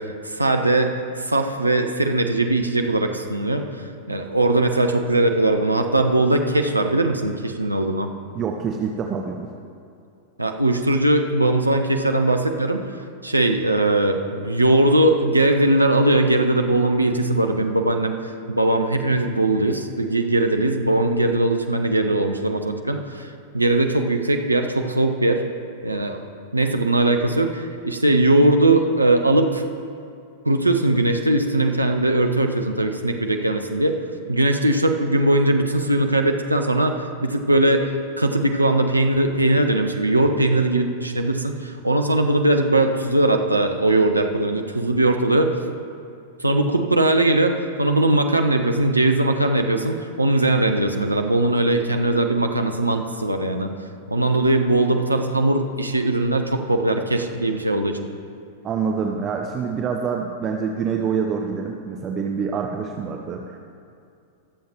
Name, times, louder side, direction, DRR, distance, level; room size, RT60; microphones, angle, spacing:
voice 1, 0.0-8.1 10.4-25.4 25.8-26.3 26.5-29.6 30.5-33.9 34.3-37.9 38.2-45.5 46.4-53.7 54.1-58.1, right 2 dB, 85° right, 5 dB, 0.6 m, -20 dB
voice 2, 8.3-9.5 58.6-63.6, right 6 dB, 30° right, 2 dB, 0.7 m, -26 dB
21.5 x 7.4 x 3.0 m, 2.5 s
figure-of-eight pair, 95°, 0 cm